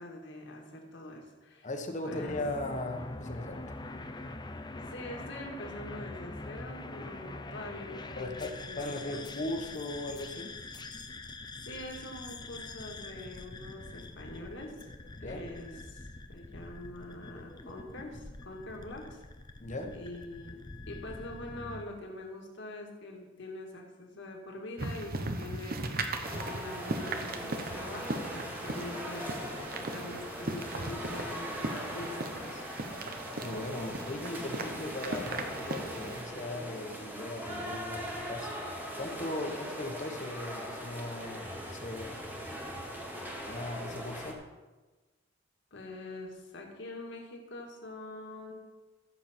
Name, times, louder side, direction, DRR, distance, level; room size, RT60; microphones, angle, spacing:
voice 1, 0.0-1.7 2.0-2.4 4.9-9.3 11.6-14.8 15.2-19.2 19.9-26.0 26.3-32.6 45.7-48.5, left 1 dB, 65° left, 1 dB, 2.0 m, -44 dB
voice 2, 1.6-3.6 8.2-10.5 15.2-15.4 19.6-19.9 33.4-38.5 39.0-42.3 43.4-44.4, left 1 dB, 40° left, 4 dB, 1.2 m, -38 dB
sound 1, 2.1-21.8, left 2 dB, 20° left, 0.6 m, -44 dB
sound 2, 24.8-36.2, right 2 dB, 50° right, 0.9 m, -38 dB
sound 3, 26.2-44.3, equal, 10° right, 1.6 m, -40 dB
15.0 x 7.1 x 4.4 m, 1.2 s
head